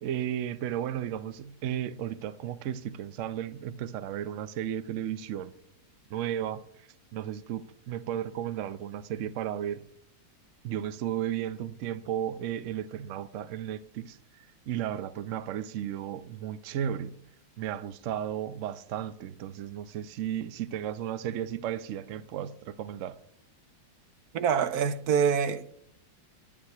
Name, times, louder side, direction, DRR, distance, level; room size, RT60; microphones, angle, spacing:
voice 1, 0.0-5.5 6.1-9.9 10.6-14.2 14.7-17.1 17.6-23.1, right 10 dB, 80° right, 0.6 m, -34 dB
voice 2, 24.3-25.7, right 7 dB, 65° right, 1.1 m, -25 dB
11.0 x 9.6 x 5.7 m
omnidirectional pair, 2.1 m